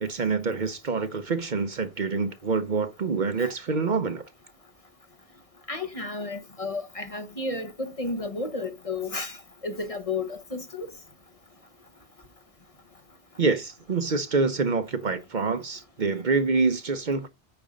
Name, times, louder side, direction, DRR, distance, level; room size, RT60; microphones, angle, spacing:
voice 1, 0.0-4.2 13.4-17.3, right 4 dB, 50° right, 0.9 m, -26 dB
voice 2, 5.7-9.4 9.6-10.9, left 3 dB, 35° left, 1.0 m, -32 dB
8.9 x 5.3 x 5.1 m
omnidirectional pair, 1.1 m